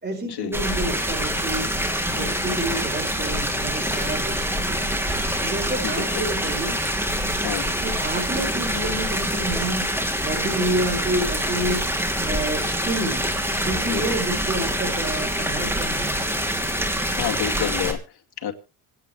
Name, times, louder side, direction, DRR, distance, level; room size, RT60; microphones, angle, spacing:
voice 1, 0.0-1.7 2.1-4.9 5.4-6.8 7.8-9.9 10.2-11.8 12.2-16.2, right 1 dB, 20° right, 2 dB, 5.7 m, -29 dB
sound 1, 0.5-17.9, equal, 5° right, 3.0 m, -25 dB
voice 2, 7.4-7.8 12.3-12.5 13.9-14.2 17.1-18.5, left 10 dB, 50° left, 4 dB, 2.7 m, -30 dB
26.5 x 9.0 x 3.3 m, 0.31 s
cardioid pair, 100°, 49 cm